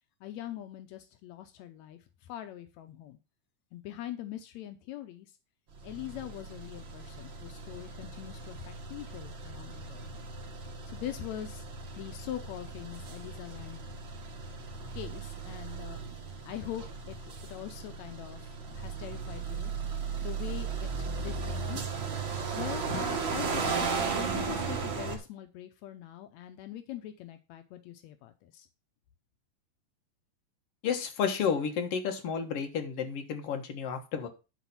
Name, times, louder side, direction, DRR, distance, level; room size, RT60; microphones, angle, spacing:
voice 1, 0.2-3.2 3.7-5.3 5.8-10.1 10.8-11.7 12.0-13.9 14.9-16.0 16.4-21.8 22.5-28.7, left 12 dB, 85° left, 1.6 m, -43 dB
sound 1, 5.7-25.2, right 5 dB, 45° right, 1.8 m, -36 dB
voice 2, 30.8-34.3, left 6 dB, 55° left, 1.9 m, -31 dB
10.5 x 4.1 x 5.6 m
omnidirectional pair, 4.0 m